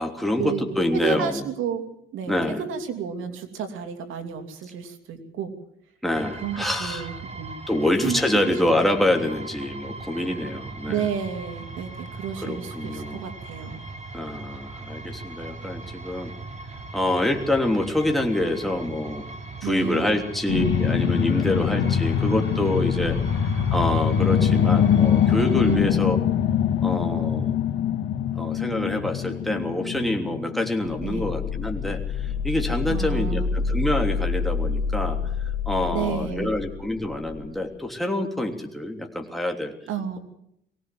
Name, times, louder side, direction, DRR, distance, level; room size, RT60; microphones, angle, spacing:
voice 1, 0.0-1.4 2.3-2.6 6.0-7.1 7.7-11.1 12.4-13.2 14.1-16.3 16.9-19.2 19.6-26.2 26.8-27.6 28.3-39.7, left 1 dB, ahead, 2 dB, 3.2 m, -26 dB
voice 2, 0.9-1.8 2.1-5.5 6.4-7.6 8.0-8.2 8.7-8.8 10.9-13.8 19.6-20.2 25.7-26.0 31.0-31.4 32.9-33.5 35.9-36.5 39.9-40.2, right 8 dB, 90° right, 7 dB, 2.8 m, -31 dB
sound 1, 6.1-25.8, right 3 dB, 35° right, 3.0 m, -39 dB
sound 2, 20.5-33.1 33.6-33.7, left 8 dB, 90° left, 1.8 m, -24 dB
sound 3, 30.8-37.5, left 5 dB, 25° left, 4.9 m, -28 dB
20.5 x 17.5 x 7.7 m, 0.76 s
cardioid pair, 90°, 20 cm